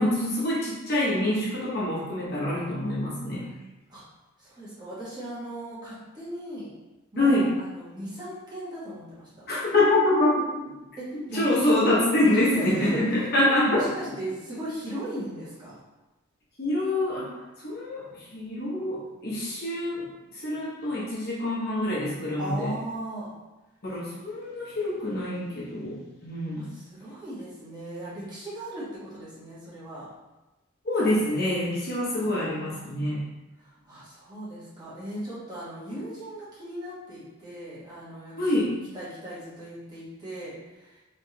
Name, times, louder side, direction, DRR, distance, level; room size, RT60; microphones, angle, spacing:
voice 1, 0.0-3.4 7.2-7.5 9.5-10.4 11.1-13.9 16.6-17.3 17.6-20.1 20.3-22.7 23.8-26.8 30.8-33.2 38.4-38.7, left 1 dB, 50° left, -7 dB, 1.0 m, -25 dB
voice 2, 4.4-6.7 7.1-9.3 11.0-11.9 12.3-13.0 13.6-15.8 22.4-23.3 26.6-30.1 32.1-33.2 33.6-38.7 38.9-41.0, right 1 dB, 20° right, -9 dB, 1.1 m, -37 dB
3.3 x 3.1 x 2.8 m, 1.1 s
head